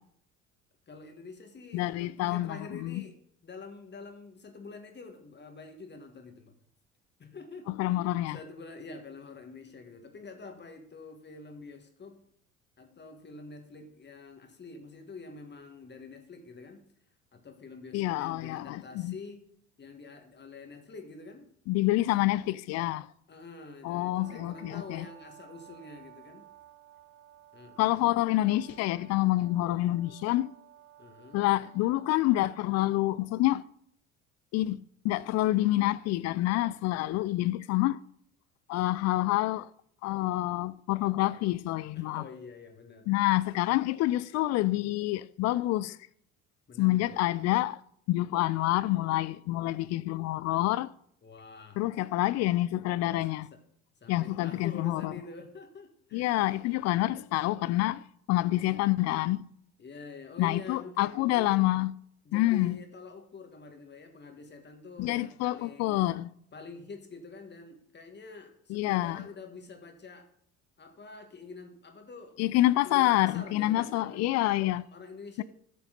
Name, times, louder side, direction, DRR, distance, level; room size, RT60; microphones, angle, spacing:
voice 1, 0.9-3.2 3.4-6.5 7.2-12.2 12.8-16.8 17.3-19.4 19.8-21.5 23.3-26.5 27.5-28.5 31.0-31.5 41.9-43.1 46.7-47.2 51.2-51.8 53.5-53.6 54.0-56.4 58.5-58.9 59.8-61.7 62.2-66.0 66.5-70.3 70.8-72.4 72.8-74.3 74.6-75.4, left 4 dB, 25° left, 1.8 m, -47 dB
voice 2, 1.7-3.0 7.8-8.4 17.9-19.1 21.7-23.1 23.8-25.0 27.8-30.5 31.3-33.6 34.5-38.0 38.7-39.7 40.0-42.2 43.1-46.0 46.8-47.8 48.1-50.9 51.8-53.5 54.1-55.1 56.1-58.0 58.3-59.4 60.4-61.9 62.3-62.8 65.0-66.3 68.7-69.2 72.4-74.8 75.4-75.5, left 16 dB, 45° left, 0.5 m, -27 dB
Brass instrument, 24.1-33.1, right 12 dB, 30° right, 4.7 m, -55 dB
13.0 x 6.9 x 4.0 m
figure-of-eight pair, 60°, 39 cm